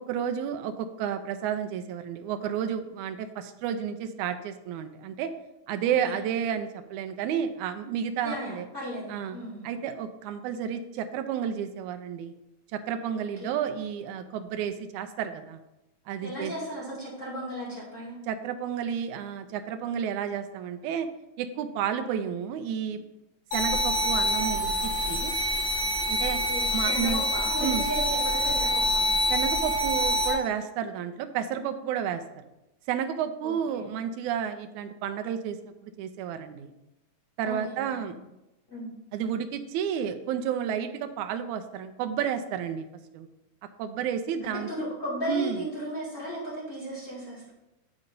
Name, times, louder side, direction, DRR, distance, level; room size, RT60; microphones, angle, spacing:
voice 1, 0.0-5.3 5.7-8.7 9.1-9.4 9.6-12.3 12.7-15.6 16.1-16.5 18.3-21.1 21.4-23.0 23.5-25.3 26.1-26.4 26.7-27.3 27.6-27.8 29.3-32.2 32.9-36.7 37.4-38.1 39.1-42.9 43.1-43.3 43.8-44.7 45.3-45.6, right 8 dB, 85° right, 8 dB, 2.0 m, -31 dB
voice 2, 8.2-9.6 13.4-13.5 16.2-18.2 26.5-29.0 33.4-33.9 37.4-38.1 38.7-38.9 44.4-47.5, equal, 25° left, -8 dB, 2.4 m, -35 dB
sound 1, 23.5-30.3, equal, 80° left, 3.2 m, -26 dB
9.6 x 4.0 x 5.3 m, 0.93 s
omnidirectional pair, 3.4 m